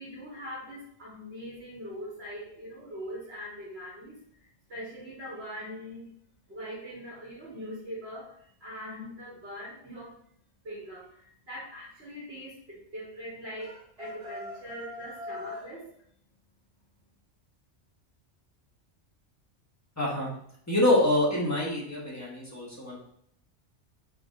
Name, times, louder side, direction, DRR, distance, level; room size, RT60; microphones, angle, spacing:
voice 1, 0.0-4.2 4.7-6.1 6.5-10.2 10.6-16.0, equal, 55° right, -6 dB, 2.0 m, -42 dB
sound 1, 13.6-15.7, left 2 dB, 30° right, 1.0 m, -41 dB
voice 2, 20.0-20.3 20.7-23.0, left 1 dB, 15° left, -4 dB, 1.2 m, -26 dB
4.2 x 3.3 x 3.7 m, 0.68 s
omnidirectional pair, 1.2 m